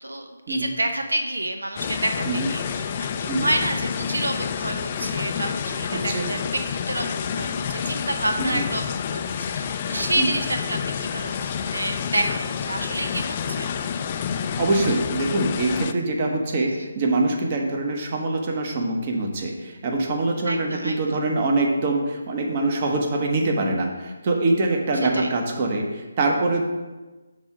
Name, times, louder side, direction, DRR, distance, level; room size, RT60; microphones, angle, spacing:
voice 1, 0.0-13.7 16.6-16.9 20.4-21.2 25.1-25.3, right 1 dB, 85° right, 5 dB, 0.6 m, -29 dB
sound 1, 1.8-15.9, left 7 dB, 30° left, 0.3 m, -29 dB
voice 2, 5.9-6.3 8.4-8.6 10.2-10.4 14.6-26.6, right 2 dB, 35° right, 1 dB, 1.0 m, -24 dB
6.3 x 3.7 x 6.0 m, 1.2 s
figure-of-eight pair, 155°, 0 cm